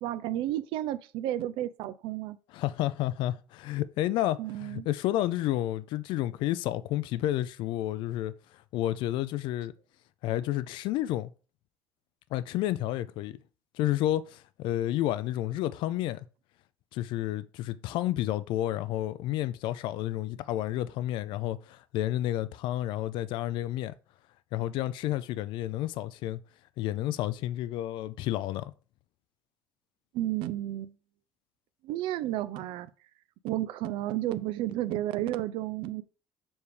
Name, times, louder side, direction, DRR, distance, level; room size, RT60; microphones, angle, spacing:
voice 1, 0.0-2.4 4.4-4.9 30.1-30.9 31.8-32.9 33.4-36.0, right 14 dB, 80° right, 0.5 m, -32 dB
voice 2, 2.5-9.7 10.2-11.3 12.3-13.4 13.7-16.3 16.9-23.9 24.5-26.4 26.8-28.7, left 14 dB, 70° left, 0.4 m, -30 dB
7.1 x 3.5 x 4.8 m
cardioid pair, 155°, 9 cm